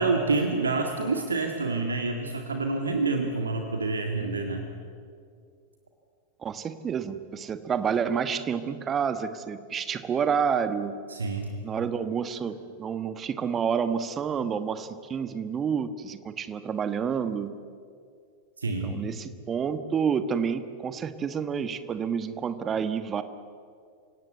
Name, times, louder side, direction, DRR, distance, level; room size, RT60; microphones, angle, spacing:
voice 1, 0.0-4.7 11.1-11.5 18.6-19.0, right 3 dB, 75° right, 4 dB, 2.1 m, -27 dB
voice 2, 6.4-11.0 11.6-17.5 18.8-23.2, right 7 dB, 25° right, 11 dB, 1.3 m, -29 dB
29.0 x 17.0 x 8.3 m, 2.3 s
figure-of-eight pair, 90°, 0 cm